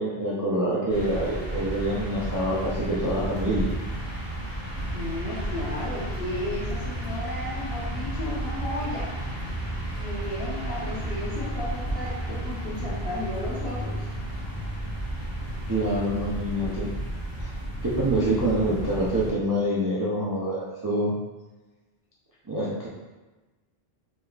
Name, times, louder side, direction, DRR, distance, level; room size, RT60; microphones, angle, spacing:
voice 1, 0.0-3.7 15.7-16.9 17.4-17.5 17.8-21.1 22.5-22.9, right 1 dB, 30° right, -7 dB, 0.4 m, -26 dB
sound 1, 0.9-19.3, right 1 dB, 15° left, 0.9 m, -32 dB
voice 2, 4.9-9.1 10.0-14.0, left 1 dB, 70° left, -6 dB, 1.3 m, -34 dB
3.5 x 3.1 x 2.4 m, 1.2 s
omnidirectional pair, 1.1 m